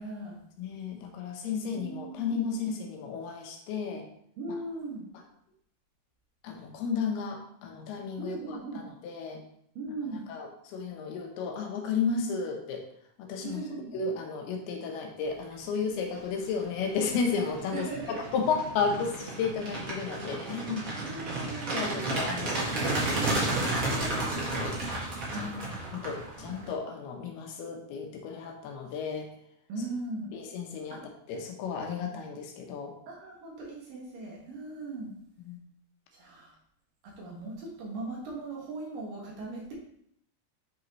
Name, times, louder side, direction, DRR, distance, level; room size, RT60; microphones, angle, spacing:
voice 1, 0.0-0.4 1.5-2.3 4.4-5.1 8.2-8.8 9.8-10.2 13.4-13.9 17.7-18.2 21.0-22.0 25.3-25.8 29.7-30.3 30.9-31.0 33.1-35.1 36.1-36.5 37.2-39.7, right 2 dB, 65° right, -3 dB, 3.0 m, -38 dB
voice 2, 0.6-4.1 4.5-4.6 6.4-9.4 10.3-12.9 13.2-13.6 13.9-17.9 18.3-20.9 21.7-24.8 25.4-25.5 25.9-29.3 30.3-31.0 31.3-32.9 35.4-35.6, left 5 dB, 80° left, 3 dB, 2.8 m, -33 dB
sound 1, 15.9-16.2 16.6-26.7, right 2 dB, 45° right, 1.7 m, -32 dB
8.2 x 5.4 x 3.0 m, 0.69 s
omnidirectional pair, 4.7 m